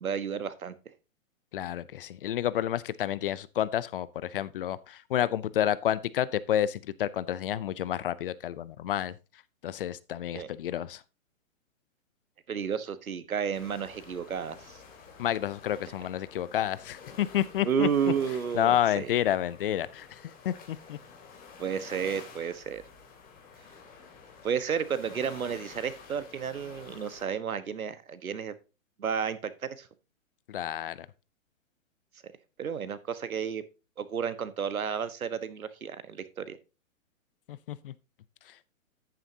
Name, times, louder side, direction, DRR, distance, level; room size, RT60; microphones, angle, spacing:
voice 1, 0.0-0.7 10.3-10.5 12.5-14.8 17.6-19.1 21.6-22.8 24.4-28.5 29.0-29.9 32.6-33.6 34.0-36.6, right 7 dB, 85° right, 1.3 m, -32 dB
voice 2, 1.5-9.1 9.6-11.0 15.2-18.1 18.5-20.2 20.4-21.0 30.5-31.0 37.5-37.9, left 11 dB, 40° left, 0.6 m, -30 dB
sound 1, 13.5-27.2, left 5 dB, 20° left, 2.8 m, -50 dB
10.0 x 9.1 x 2.8 m
hypercardioid pair, 140°, 41 cm